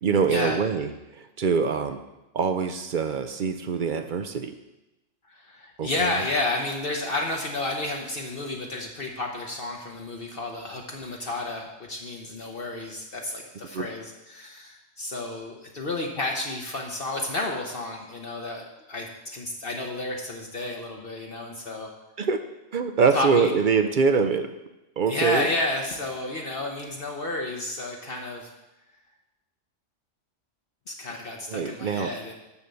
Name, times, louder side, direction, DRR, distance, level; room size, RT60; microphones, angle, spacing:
voice 1, 0.0-2.0 2.3-4.5 5.8-6.2 13.7-13.9 22.2-22.4 22.7-24.5 25.0-25.5 31.5-32.1, right 5 dB, 55° right, 9 dB, 0.6 m, -24 dB
voice 2, 5.3-21.9 23.1-23.5 25.1-28.5 30.9-32.3, left 2 dB, 50° left, 1 dB, 1.1 m, -31 dB
7.2 x 6.4 x 6.9 m, 0.99 s
omnidirectional pair, 1.3 m